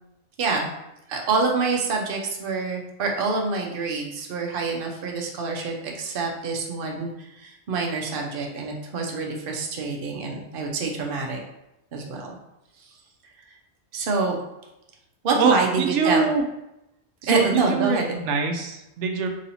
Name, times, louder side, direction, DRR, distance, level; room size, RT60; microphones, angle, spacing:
voice 1, 0.4-0.7 1.1-11.4 11.9-12.4 13.9-14.4 15.2-16.3 17.3-18.2, right 4 dB, 55° right, 0 dB, 0.8 m, -26 dB
voice 2, 15.3-16.4 17.2-19.3, right 4 dB, 90° right, 4 dB, 0.9 m, -24 dB
3.1 x 2.7 x 4.1 m, 0.88 s
omnidirectional pair, 1.2 m